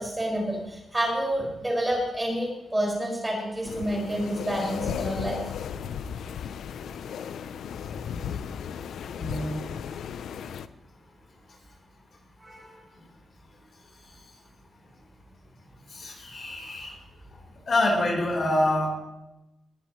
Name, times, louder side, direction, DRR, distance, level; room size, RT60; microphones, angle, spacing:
voice 1, 0.0-5.4 12.4-12.8, right 1 dB, 10° right, -3 dB, 5.6 m, -29 dB
sound 1, 3.7-10.7, left 8 dB, 85° left, 0.6 m, -35 dB
voice 2, 9.1-9.6 15.9-16.9 17.7-18.9, left 1 dB, 45° left, -1 dB, 4.3 m, -26 dB
20.5 x 15.0 x 3.2 m, 0.94 s
wide cardioid pair, 160°, 0 cm